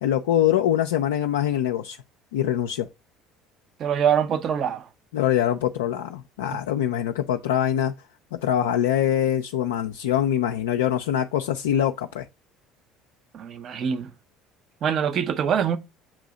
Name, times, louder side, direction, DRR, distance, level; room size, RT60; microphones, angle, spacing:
voice 1, 0.0-2.0 2.3-2.9 5.1-7.9 8.3-12.3, left 10 dB, 75° left, 0.3 m, -23 dB
voice 2, 3.8-4.9 6.5-6.6 13.3-14.1 14.8-15.8, right 8 dB, 50° right, 0.7 m, -24 dB
7.3 x 2.7 x 4.9 m
hypercardioid pair, 65°, 0 cm